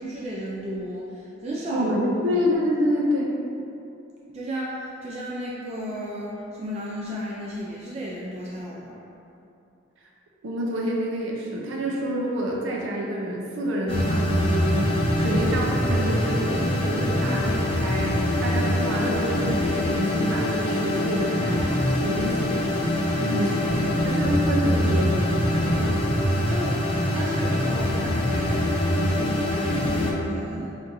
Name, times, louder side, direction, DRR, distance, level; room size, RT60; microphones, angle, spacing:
voice 1, 0.0-1.9 2.3-2.4 4.3-9.0 23.1-23.5 25.8-28.7 29.1-30.8, equal, 30° right, -6 dB, 0.3 m, -34 dB
voice 2, 1.7-3.3 10.4-21.6 21.9-22.6 23.3-23.5 24.0-25.2, equal, 90° right, -3 dB, 0.5 m, -27 dB
sound 1, 13.9-30.1, left 1 dB, 30° left, 0.5 m, -24 dB
5.8 x 2.6 x 2.6 m, 2.8 s
head